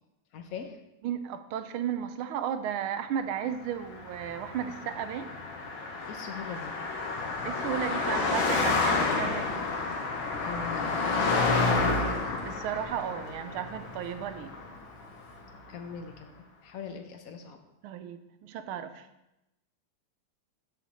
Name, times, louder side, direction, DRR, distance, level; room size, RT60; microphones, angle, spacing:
voice 1, 0.3-0.8 6.1-6.8 10.4-12.3 15.7-17.6, left 6 dB, 85° left, 5 dB, 0.7 m, -41 dB
voice 2, 1.0-5.4 7.4-9.7 12.4-14.5 17.8-19.1, right 9 dB, 80° right, 10 dB, 1.4 m, -34 dB
Car passing by, 3.9-15.4, left 3 dB, 65° left, 1.9 m, -30 dB
12.5 x 4.9 x 4.1 m, 0.92 s
omnidirectional pair, 2.4 m